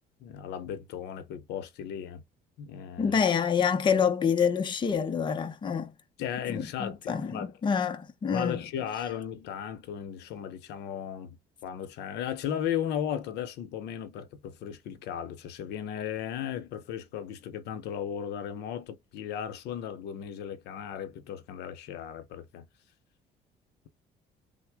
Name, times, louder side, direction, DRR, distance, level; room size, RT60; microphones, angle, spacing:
voice 1, 0.2-2.2 2.6-3.2 6.2-7.5 8.3-11.4 11.6-22.6, left 9 dB, 80° left, 0.7 m, -36 dB
voice 2, 3.0-5.9 6.5-8.6, left 6 dB, 30° left, 0.6 m, -27 dB
3.3 x 2.1 x 3.4 m
cardioid pair, 110°, 17 cm